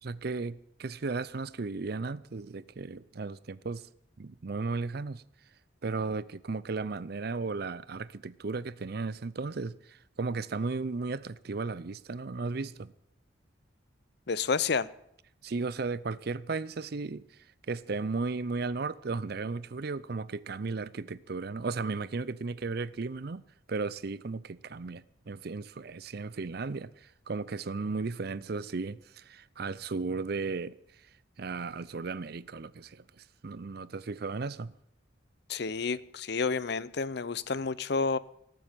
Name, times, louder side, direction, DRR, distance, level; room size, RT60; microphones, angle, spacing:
voice 1, 0.0-3.9 4.2-5.2 5.8-12.9 15.4-17.2 17.7-23.4 23.7-30.8 31.4-34.7, right 4 dB, 55° right, 0.5 m, -35 dB
voice 2, 14.3-14.9 35.5-38.2, left 4 dB, 60° left, 0.6 m, -30 dB
19.0 x 7.7 x 8.9 m
head